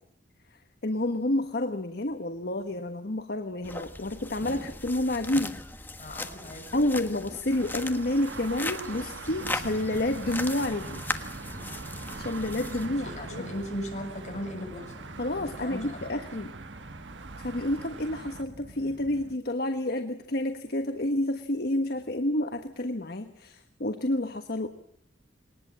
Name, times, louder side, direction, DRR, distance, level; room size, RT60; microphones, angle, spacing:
voice 1, 0.8-5.5 6.7-11.0 12.2-13.5 15.2-16.5 17.4-24.7, left 1 dB, 55° left, 7 dB, 1.3 m, -29 dB
sound 1, 3.6-12.9, left 2 dB, 10° left, 1.4 m, -38 dB
voice 2, 6.0-6.8 12.8-15.1 15.3-16.0, equal, 40° left, 2 dB, 7.2 m, -38 dB
sound 2, 7.5-18.4, right 4 dB, 90° right, 1.2 m, -44 dB
sound 3, 9.3-19.4, right 1 dB, 45° right, 1.0 m, -45 dB
21.5 x 19.5 x 7.5 m, 0.70 s
head